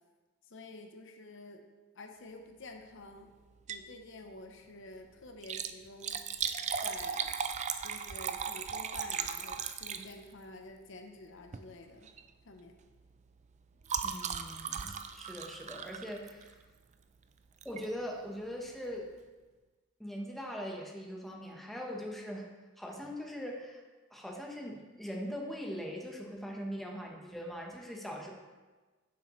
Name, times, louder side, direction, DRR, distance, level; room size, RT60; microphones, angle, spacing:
voice 1, 0.5-1.6 2.0-3.3 3.7-6.2 6.8-7.3 7.8-12.1 12.4-12.8, left 2 dB, 65° left, 5 dB, 0.8 m, -49 dB
Liquid, 3.5-3.9 4.3-4.4 5.3-10.4 11.4-11.7 12.0-12.3 12.6-16.7 17.6-17.9 18.4-18.5 18.7-18.8, right 7 dB, 35° right, 0.4 m, -37 dB
voice 2, 14.0-16.6 17.6-19.1 20.0-22.5 22.8-23.8 24.1-28.3, equal, ahead, -1 dB, 1.0 m, -41 dB
9.8 x 7.3 x 3.1 m, 1.3 s
head